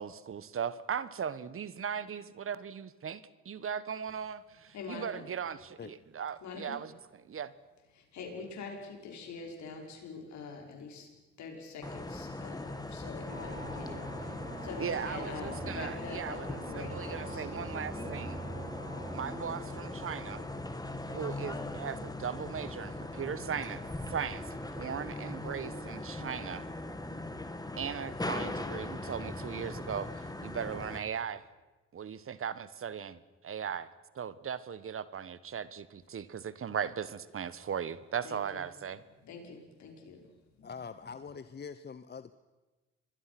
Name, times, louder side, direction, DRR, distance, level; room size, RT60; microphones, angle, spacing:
voice 1, 0.0-6.9 7.2-7.5 14.8-18.4 19.1-20.4 21.1-23.8 24.1-26.7 27.8-31.4 31.9-33.9 34.1-39.0, right 7 dB, 45° right, 16 dB, 1.3 m, -38 dB
voice 2, 4.7-5.3 6.4-6.8 7.9-17.5 38.2-38.6 39.2-40.7, left 4 dB, 70° left, 2 dB, 5.8 m, -45 dB
sound 1, 11.8-31.0, left 2 dB, 15° left, 2.4 m, -40 dB
sound 2, 13.3-24.7, right 2 dB, 25° right, 5.5 m, -46 dB
voice 3, 40.6-42.3, left 6 dB, 35° left, 12 dB, 1.0 m, -44 dB
28.0 x 22.5 x 6.1 m, 1.2 s
supercardioid pair, 70°, 29 cm